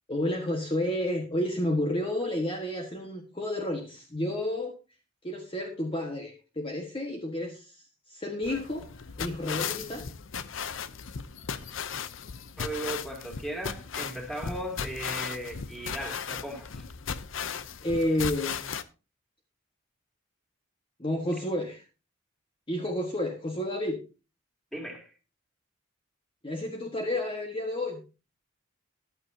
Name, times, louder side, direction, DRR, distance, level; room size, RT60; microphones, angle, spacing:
voice 1, 0.1-4.7 5.2-8.9 9.2-10.1 17.8-18.8 21.0-21.8 22.7-24.0 26.4-28.0, left 1 dB, 25° left, 1.5 m, -31 dB
sound 1, 8.4-18.8, left 7 dB, 70° left, 0.7 m, -36 dB
voice 2, 12.6-16.9 24.7-25.1, right 1 dB, ahead, 2.8 m, -37 dB
14.0 x 11.5 x 2.8 m
head